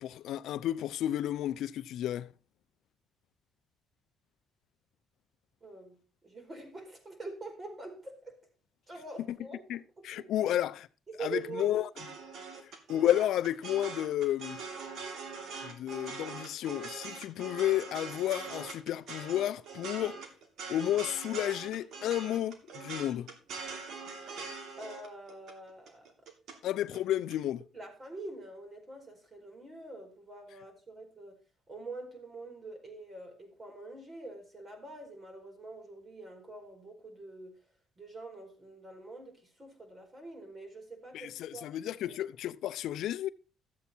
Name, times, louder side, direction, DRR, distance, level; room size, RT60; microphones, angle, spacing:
voice 1, 0.0-2.3 9.7-10.9 11.2-11.9 12.6-14.6 15.6-20.2 20.7-23.3 26.6-27.6 41.1-43.3, left 12 dB, 75° left, 0.6 m, -32 dB
voice 2, 5.6-8.5 8.9-9.6 10.0-10.3 11.1-11.8 24.8-26.1 27.7-31.4 31.7-37.5 38.0-41.7 42.0-42.1, right 3 dB, 30° right, 4.8 m, -45 dB
sound 1, 11.4-26.6 26.9-27.3, right 4 dB, 70° right, 2.8 m, -43 dB
13.5 x 8.1 x 4.5 m
cardioid pair, 95°, 0 cm